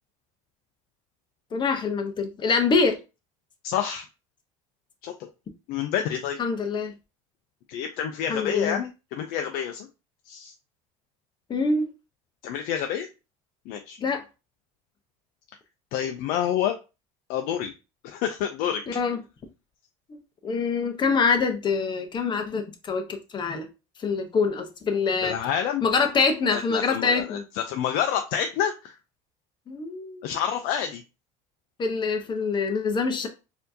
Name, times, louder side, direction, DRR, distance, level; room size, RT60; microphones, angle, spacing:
voice 1, 1.5-3.0 6.4-6.9 8.3-8.8 11.5-11.9 14.0-14.2 18.9-19.2 20.1-23.7 24.0-25.3 25.8-27.4 29.7-30.2 31.8-33.3, left 4 dB, 30° left, 0.8 m, -25 dB
voice 2, 3.6-4.0 5.0-5.3 5.7-6.4 7.7-9.9 10.2-10.5 12.4-13.1 13.7-14.0 15.9-16.8 17.3-17.7 18.0-18.8 25.2-25.9 26.5-29.0 30.2-31.0, left 9 dB, 70° left, 0.5 m, -28 dB
4.3 x 2.7 x 2.7 m
cardioid pair, 125°, 16 cm